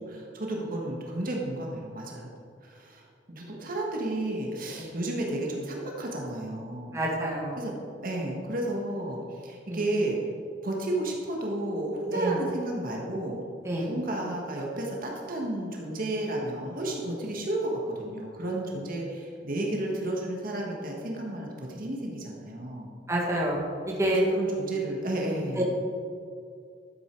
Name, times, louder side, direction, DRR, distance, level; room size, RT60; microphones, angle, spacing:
voice 1, 0.0-2.3 2.6-7.0 7.6-7.7 8.0-10.2 10.6-13.4 13.7-22.9 24.1-25.6, right 1 dB, 50° right, -1 dB, 1.6 m, -32 dB
voice 2, 6.9-7.6 9.7-9.8 12.1-12.4 13.6-13.9 23.1-23.6 24.0-24.2 25.6-25.7, right 1 dB, 15° right, -3 dB, 1.8 m, -27 dB
12.0 x 8.2 x 4.7 m, 2.3 s
head